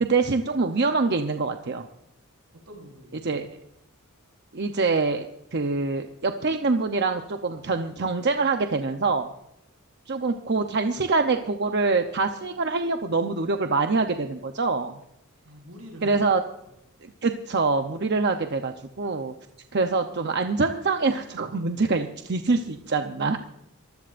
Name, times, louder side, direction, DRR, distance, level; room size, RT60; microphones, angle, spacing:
voice 1, 0.0-1.9 3.2-3.5 4.5-5.3 5.5-9.3 10.1-15.0 16.0-16.4 17.0-19.3 19.7-23.4, right 3 dB, 50° right, 5 dB, 0.8 m, -25 dB
voice 2, 2.5-3.5 10.2-10.3 15.4-16.2, equal, 80° right, 0 dB, 5.4 m, -46 dB
23.5 x 15.5 x 2.6 m, 0.80 s
head